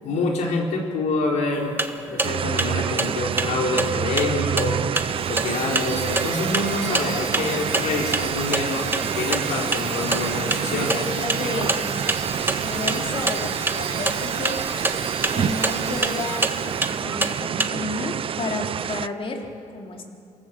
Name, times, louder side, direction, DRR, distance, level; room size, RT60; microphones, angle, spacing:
voice 1, 0.0-1.8 2.1-4.8 5.3-10.9, left 3 dB, 80° left, 1 dB, 4.1 m, -26 dB
sound 1, 1.5-17.7, right 2 dB, 15° right, 1.5 m, -29 dB
sound 2, 2.2-19.1, right 8 dB, 50° right, 0.5 m, -28 dB
Domestic sounds home sounds, 5.0-17.1, right 5 dB, 65° right, 5.4 m, -33 dB
voice 2, 10.6-12.2 12.6-14.6 15.3-20.0, left 2 dB, 50° left, 2 dB, 3.5 m, -32 dB
27.0 x 18.5 x 7.6 m, 2.5 s
cardioid pair, 85°, 12 cm